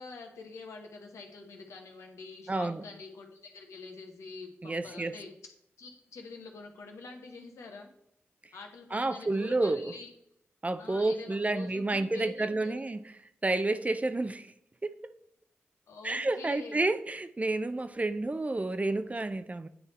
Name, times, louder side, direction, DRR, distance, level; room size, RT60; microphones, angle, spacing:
voice 1, 0.0-5.3 5.8-7.9 8.5-10.1 10.8-12.8 15.9-16.8, left 4 dB, 90° left, 1.1 m, -46 dB
voice 2, 2.5-2.8 4.6-5.2 8.9-9.9 10.6-13.0 13.4-14.5 14.8-14.9 16.0-19.7, right 2 dB, 30° right, 0.5 m, -30 dB
9.3 x 3.4 x 4.3 m
cardioid pair, 45°, 5 cm